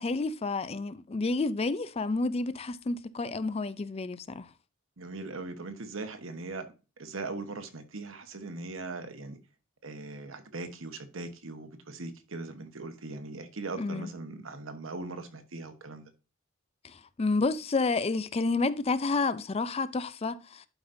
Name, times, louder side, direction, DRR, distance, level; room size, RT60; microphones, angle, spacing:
voice 1, 0.0-4.5 13.8-14.1 16.8-20.7, left 3 dB, 30° left, 0.4 m, -30 dB
voice 2, 5.0-6.7 7.0-9.4 9.8-16.1, right 3 dB, 80° right, 1.1 m, -40 dB
11.5 x 5.1 x 2.6 m
head